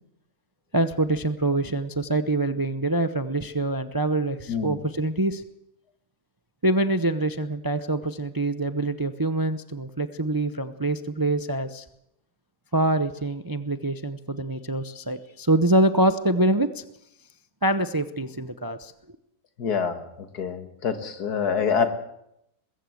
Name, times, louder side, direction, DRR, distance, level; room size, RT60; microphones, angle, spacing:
voice 1, 0.7-5.4 6.6-11.8 12.7-16.8 17.6-18.9, right 2 dB, 25° right, 10 dB, 0.4 m, -25 dB
voice 2, 19.6-20.0 20.4-22.0, left 6 dB, 85° left, 9 dB, 2.1 m, -25 dB
21.5 x 15.5 x 7.8 m, 0.81 s
omnidirectional pair, 1.6 m